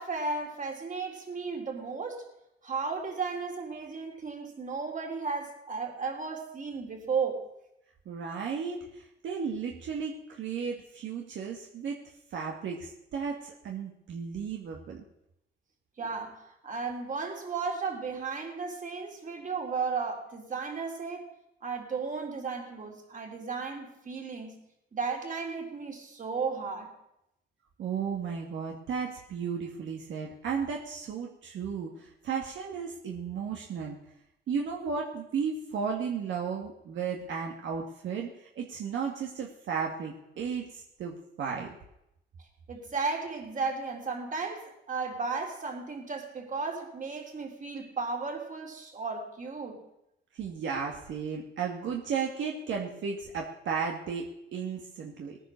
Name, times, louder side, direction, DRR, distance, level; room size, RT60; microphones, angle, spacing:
voice 1, 0.0-2.3 2.6-7.4 16.0-21.3 21.6-24.6 24.9-26.9 42.7-49.9, right 4 dB, 40° right, 2 dB, 3.9 m, -34 dB
voice 2, 8.1-12.0 12.3-15.0 27.8-34.0 34.5-41.7 50.3-54.3 54.5-55.4, right 6 dB, 70° right, 0 dB, 2.1 m, -34 dB
19.0 x 9.9 x 6.6 m, 0.84 s
cardioid pair, 90°, 20 cm